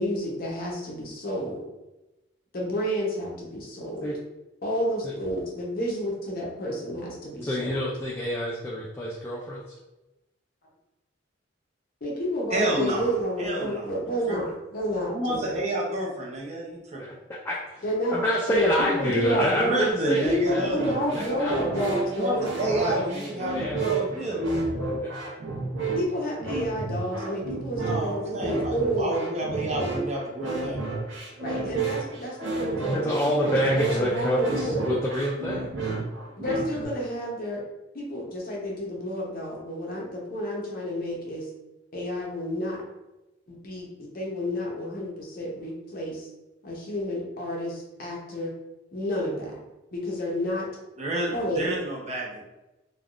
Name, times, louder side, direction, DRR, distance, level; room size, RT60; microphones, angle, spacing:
voice 1, 0.0-1.6 2.5-4.1 4.6-7.8 12.0-15.6 17.8-19.7 20.2-22.4 25.9-29.1 31.4-34.9 36.4-37.6 37.9-41.5 41.9-42.8 43.5-46.3 46.6-48.5 48.9-49.5 49.9-50.7 51.3-51.8, equal, 50° left, -2 dB, 0.7 m, -30 dB
voice 2, 7.4-9.8 17.0-17.1 17.4-17.8 18.1-20.7 21.1-23.8 24.1-24.5 25.0-25.1 32.8-35.7, equal, 15° left, -4 dB, 0.3 m, -28 dB
voice 3, 12.5-13.1 13.4-14.4 15.1-17.0 19.6-21.4 22.1-24.4 27.7-30.8 51.0-52.4, right 1 dB, 35° right, -2 dB, 0.6 m, -30 dB
sound 1, 20.7-36.9, right 3 dB, 90° right, 0.9 m, -31 dB
3.4 x 2.3 x 2.4 m, 1.0 s
head